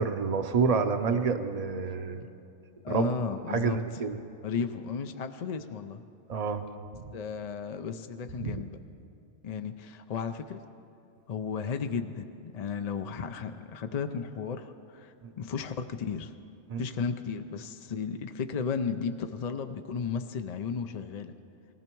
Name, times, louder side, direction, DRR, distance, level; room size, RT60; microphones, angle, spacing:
voice 1, 0.0-2.3 2.9-3.1 3.5-4.2 6.3-6.7 8.4-8.6 15.2-15.3 16.7-16.8, right 5 dB, 40° right, 8 dB, 0.7 m, -28 dB
voice 2, 2.8-4.0 4.4-6.0 7.1-8.7 9.4-10.6 11.3-16.3 16.8-21.3, left 6 dB, 50° left, 7 dB, 0.5 m, -34 dB
19.5 x 15.0 x 4.6 m, 2.7 s
omnidirectional pair, 1.2 m